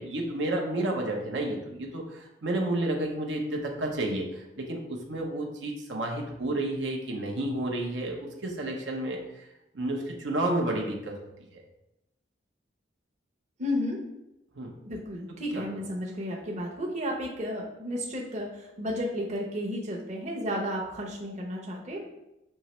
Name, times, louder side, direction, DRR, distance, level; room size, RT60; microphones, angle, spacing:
voice 1, 0.0-9.2 9.7-11.1 11.5-11.6 14.6-14.7 15.5-15.7, right 1 dB, 80° right, 0 dB, 0.7 m, -31 dB
voice 2, 13.6-14.0 14.8-22.1, equal, 40° right, -1 dB, 0.8 m, -33 dB
5.5 x 2.8 x 3.1 m, 0.89 s
head